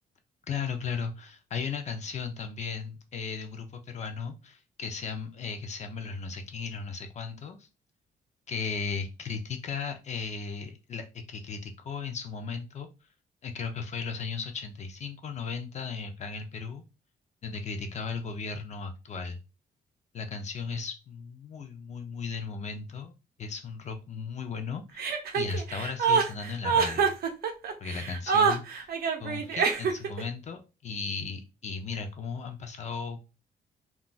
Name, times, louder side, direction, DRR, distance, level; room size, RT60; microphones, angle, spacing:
voice 1, 0.5-7.7 8.5-12.9 13.4-16.8 17.4-19.4 20.1-27.1 27.8-28.9 29.2-33.2, left 5 dB, 40° left, 6 dB, 0.4 m, -36 dB
Chuckle chortle, 25.0-30.2, right 6 dB, 60° right, 0.6 m, -26 dB
2.3 x 2.2 x 3.8 m, 0.29 s
cardioid pair, 155°, 17 cm